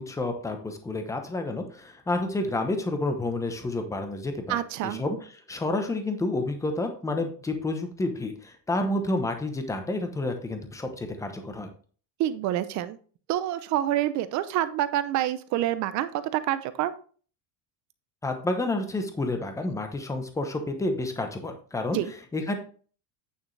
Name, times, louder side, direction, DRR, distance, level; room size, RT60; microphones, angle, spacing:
voice 1, 0.0-4.6 4.8-11.7 18.2-22.5, left 2 dB, 5° left, 5 dB, 0.9 m, -30 dB
voice 2, 4.5-5.0 12.2-13.0 13.3-16.9 21.9-22.1, right 12 dB, 45° right, 13 dB, 0.7 m, -27 dB
8.8 x 7.0 x 3.3 m, 0.41 s
cardioid pair, 170°, 42 cm